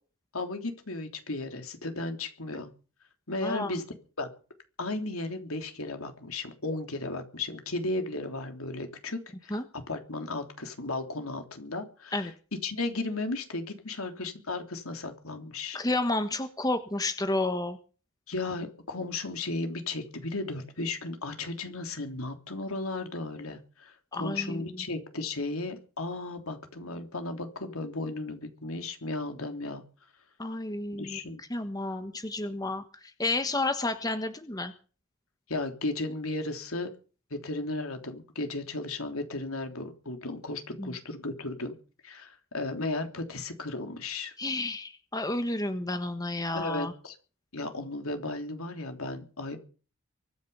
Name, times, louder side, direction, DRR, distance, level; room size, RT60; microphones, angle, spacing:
voice 1, 0.3-2.7 3.3-3.8 4.2-4.3 4.8-9.6 9.9-12.3 12.6-15.8 18.3-29.8 30.9-31.4 35.5-36.9 37.3-41.7 42.0-44.3 46.5-47.1 47.5-49.6, left 2 dB, 80° left, 5 dB, 3.3 m, -35 dB
voice 2, 3.4-3.8 9.5-9.6 12.1-12.3 15.7-17.8 24.1-24.6 30.4-31.2 31.5-32.8 33.2-34.7 40.8-40.9 44.4-46.9, left 2 dB, 15° left, 8 dB, 1.4 m, -31 dB
24.0 x 10.0 x 5.6 m, 0.37 s
head